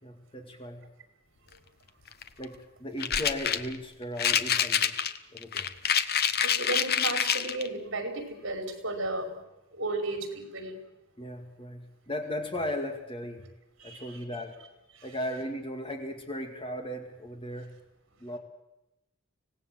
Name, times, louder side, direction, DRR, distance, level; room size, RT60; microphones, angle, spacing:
voice 1, 0.0-0.9 2.4-4.9 5.3-5.7 11.2-13.5 13.8-14.6 15.0-17.8 18.2-18.4, left 1 dB, 25° left, 5 dB, 2.3 m, -37 dB
sound 1, 2.1-2.4 3.0-3.8 4.2-7.7, left 8 dB, 50° left, 1.1 m, -26 dB
voice 2, 6.4-9.4 9.7-10.8 13.8-14.2 14.9-15.1, right 2 dB, 60° right, 5 dB, 5.0 m, -34 dB
25.0 x 18.5 x 7.8 m, 0.91 s
head